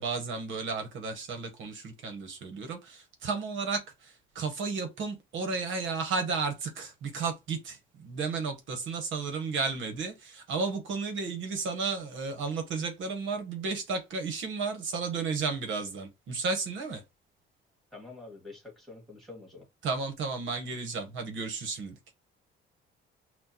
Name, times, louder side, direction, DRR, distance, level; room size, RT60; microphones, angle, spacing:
voice 1, 0.0-17.0 19.8-22.0, right 4 dB, 65° right, 1.0 m, -33 dB
voice 2, 17.9-19.7, left 3 dB, ahead, 1.9 m, -47 dB
6.1 x 2.2 x 2.8 m
cardioid pair, 135°, 21 cm